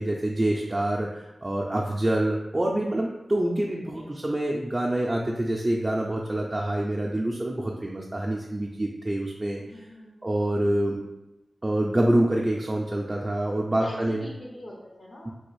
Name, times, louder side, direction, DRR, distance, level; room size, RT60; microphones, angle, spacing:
voice 1, 0.0-9.8 10.2-11.0 11.6-14.2 15.2-15.3, right 1 dB, 25° right, -1 dB, 0.3 m, -26 dB
voice 2, 3.9-4.3 9.6-10.4 13.7-15.3, left 1 dB, 60° left, -4 dB, 0.5 m, -43 dB
3.3 x 2.3 x 3.1 m, 0.98 s
wide cardioid pair, 95°, 0 cm